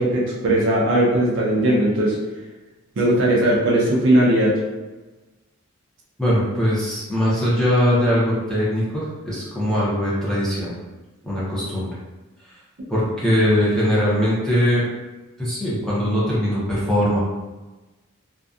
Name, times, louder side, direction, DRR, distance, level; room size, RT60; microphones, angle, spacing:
voice 1, 0.0-2.2 3.0-4.6, right 1 dB, 55° right, -3 dB, 0.5 m, -18 dB
voice 2, 6.2-10.7 11.2-11.9 12.9-14.8 15.4-17.2, equal, 5° left, -9 dB, 0.6 m, -21 dB
2.6 x 2.2 x 2.3 m, 1.2 s
head